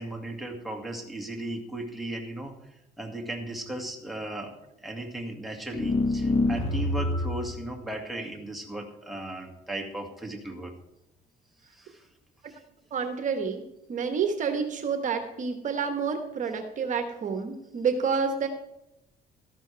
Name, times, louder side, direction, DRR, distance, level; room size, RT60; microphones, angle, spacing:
voice 1, 0.0-2.5 3.0-10.7 11.7-12.1 12.5-12.6, right 1 dB, ahead, 1 dB, 2.1 m, -36 dB
sound 1, 5.7-7.5, left 2 dB, 35° left, 1.5 m, -26 dB
voice 2, 12.9-13.6 13.9-18.5, right 5 dB, 50° right, 6 dB, 1.3 m, -29 dB
13.5 x 12.0 x 3.4 m, 0.89 s
cardioid pair, 110°, 17 cm